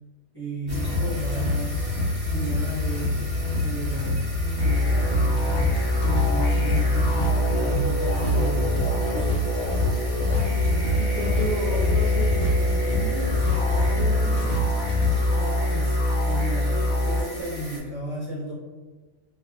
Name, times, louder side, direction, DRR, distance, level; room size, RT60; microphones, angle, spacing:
voice 1, 0.3-4.2 4.6-9.1 15.7-18.5, right 1 dB, 20° left, -11 dB, 0.9 m, -33 dB
sound 1, 0.7-15.3, left 2 dB, 85° left, 1.1 m, -27 dB
sound 2, 0.7-17.8, equal, 10° right, 0.9 m, -40 dB
sound 3, 4.6-17.2, left 1 dB, 45° left, 0.4 m, -24 dB
voice 2, 10.3-10.7 11.0-14.6 15.2-15.8, right 1 dB, 60° right, -5 dB, 0.5 m, -34 dB
2.6 x 2.4 x 2.2 m, 1.3 s
omnidirectional pair, 1.3 m